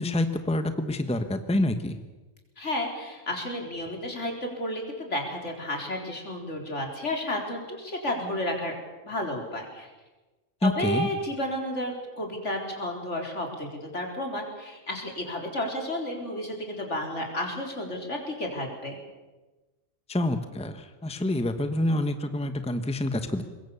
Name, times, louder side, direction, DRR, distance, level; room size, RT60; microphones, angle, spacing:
voice 1, 0.0-2.0 10.6-11.1 20.1-23.4, left 1 dB, 5° left, 9 dB, 1.1 m, -27 dB
voice 2, 2.6-8.7 9.0-9.9 10.6-19.0, left 1 dB, 70° left, 2 dB, 4.4 m, -32 dB
24.0 x 21.0 x 7.1 m, 1.2 s
omnidirectional pair, 1.3 m